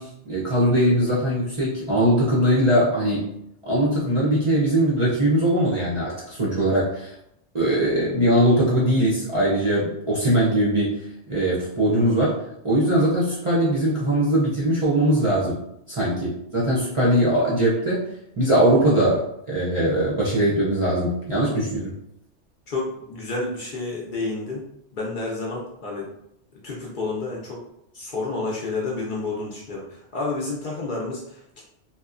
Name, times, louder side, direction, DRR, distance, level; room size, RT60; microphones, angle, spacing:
voice 1, 0.0-3.3 3.7-7.1 7.5-11.0 11.3-12.3 12.6-15.6 15.9-18.1 18.4-21.9, right 1 dB, 40° right, -8 dB, 0.5 m, -21 dB
voice 2, 22.7-24.7 24.9-26.1 26.6-27.6 27.9-31.6, left 3 dB, 60° left, -3 dB, 0.6 m, -30 dB
2.8 x 2.0 x 2.4 m, 0.80 s
omnidirectional pair, 1.2 m